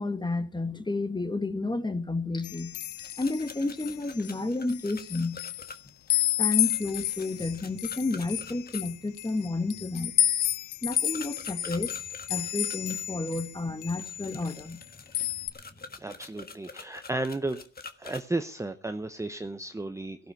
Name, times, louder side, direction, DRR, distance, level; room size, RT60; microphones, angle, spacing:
voice 1, 0.0-2.7 3.2-5.4 6.4-10.1 10.8-14.8, left 2 dB, 15° left, 1.6 m, -31 dB
sound 1, 2.4-4.3 4.7-5.7 6.1-13.5 13.8-14.8 15.1-15.5, left 12 dB, 75° left, 0.8 m, -31 dB
sound 2, 3.0-8.8 10.9-13.1 13.9-18.2, left 4 dB, 30° left, 1.5 m, -46 dB
voice 2, 16.0-17.6 18.0-20.3, right 2 dB, 10° right, 0.8 m, -33 dB
15.0 x 11.5 x 5.8 m
cardioid pair, 90°, 30 cm